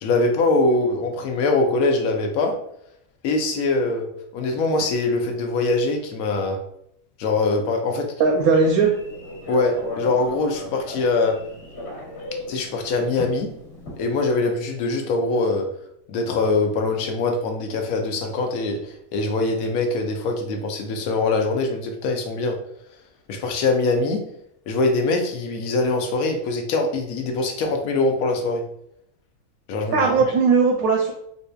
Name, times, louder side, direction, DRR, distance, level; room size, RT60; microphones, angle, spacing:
voice 1, 0.0-2.5 3.2-6.6 7.2-8.1 9.5-11.4 12.5-13.5 14.0-15.7 16.1-22.6 23.3-24.2 24.7-28.6 29.7-30.1, left 3 dB, 85° left, 3 dB, 1.1 m, -23 dB
Telephone, 8.2-14.3, left 1 dB, 50° left, 1.3 m, -37 dB
voice 2, 8.2-8.9 29.9-31.1, right 4 dB, 80° right, 1 dB, 1.0 m, -18 dB
4.0 x 2.6 x 2.2 m, 0.72 s
omnidirectional pair, 1.5 m